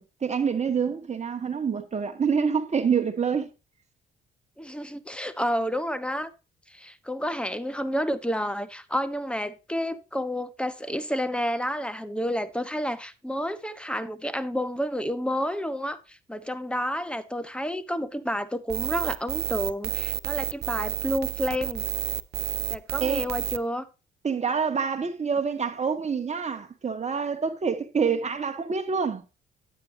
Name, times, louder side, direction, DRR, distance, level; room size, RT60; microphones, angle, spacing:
voice 1, 0.0-3.5 23.0-23.3 24.2-29.3, right 6 dB, 35° right, 1.8 m, -27 dB
voice 2, 4.6-6.3 6.7-21.8 22.7-23.9, equal, 5° left, 1.1 m, -30 dB
sound 1, 18.7-23.6, right 11 dB, 55° right, 0.6 m, -30 dB
9.7 x 9.6 x 2.7 m
cardioid pair, 90°, 20 cm